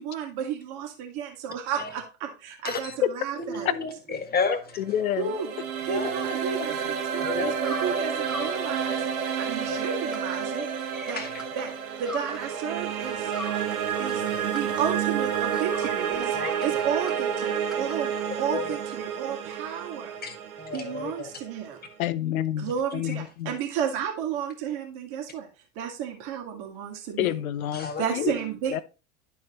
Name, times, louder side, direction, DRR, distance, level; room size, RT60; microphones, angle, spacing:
voice 1, 0.0-4.0 5.2-5.5 5.8-10.7 11.1-11.3 11.5-11.7 12.0-13.3 14.0-20.1 20.7-21.8 22.6-25.5 25.8-27.4 27.7-28.8, right 8 dB, 60° right, 2.2 m, -32 dB
voice 2, 3.5-4.8 5.9-6.1 7.2-7.5 9.7-9.8 11.2-11.3 16.3-16.5 18.5-18.7 20.2-21.3 27.7-28.0, left 5 dB, 20° left, 1.7 m, -31 dB
voice 3, 4.8-5.3 22.0-23.5 27.2-28.3 28.7-28.8, left 12 dB, 80° left, 0.7 m, -29 dB
sound 1, 4.8-21.9, right 7 dB, 80° right, 1.1 m, -30 dB
sound 2, 7.6-12.7 13.0-18.5, left 1 dB, ahead, 1.4 m, -42 dB
11.0 x 4.6 x 2.9 m
hypercardioid pair, 85°, 42 cm